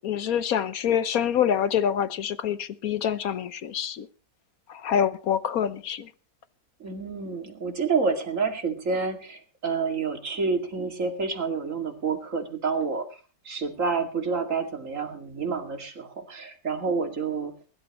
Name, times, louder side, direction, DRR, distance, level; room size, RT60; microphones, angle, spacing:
voice 1, 0.0-4.1 4.8-6.1, left 9 dB, 60° left, 1.2 m, -26 dB
voice 2, 6.8-17.5, right 4 dB, 45° right, 2.6 m, -29 dB
22.5 x 12.0 x 3.0 m
omnidirectional pair, 2.0 m